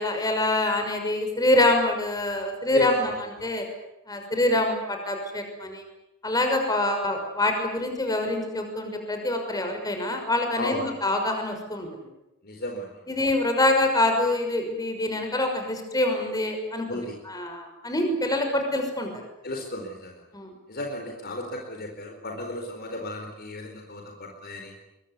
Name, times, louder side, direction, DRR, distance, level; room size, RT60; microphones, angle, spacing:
voice 1, 0.0-3.1 3.4-3.6 4.1-5.8 6.2-11.9 13.1-19.2 20.3-20.5, left 1 dB, 15° left, 4 dB, 6.0 m, -25 dB
voice 2, 2.7-3.1 10.6-10.9 12.4-12.9 16.9-17.1 19.4-20.2 20.7-24.7, left 1 dB, 45° left, 2 dB, 4.4 m, -34 dB
24.0 x 23.0 x 9.8 m, 0.93 s
head